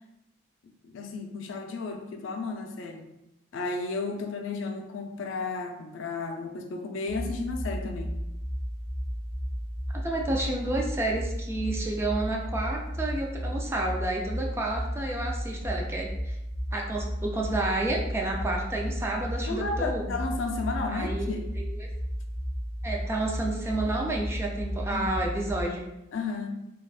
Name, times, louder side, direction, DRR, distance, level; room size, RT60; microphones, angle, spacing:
voice 1, 0.8-3.1 3.5-8.1 19.5-21.5 24.9-25.2 26.1-26.5, left 3 dB, 75° left, 3 dB, 0.4 m, -33 dB
sound 1, 7.1-25.6, equal, 5° left, 0.9 m, -33 dB
voice 2, 9.9-16.4 16.7-20.1 20.9-21.9 22.8-25.8, right 2 dB, 15° right, -1 dB, 0.3 m, -30 dB
3.4 x 2.3 x 2.3 m, 0.90 s
head